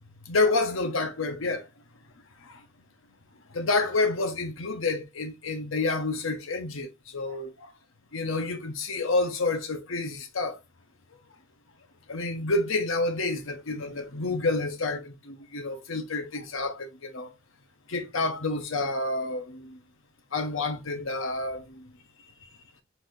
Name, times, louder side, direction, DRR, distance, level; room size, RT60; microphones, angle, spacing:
voice 1, 0.3-1.6 3.5-7.5 8.1-10.6 12.1-17.3 17.9-19.8 20.3-21.8, left 3 dB, 85° left, 0.9 m, -29 dB
4.1 x 2.7 x 3.7 m
head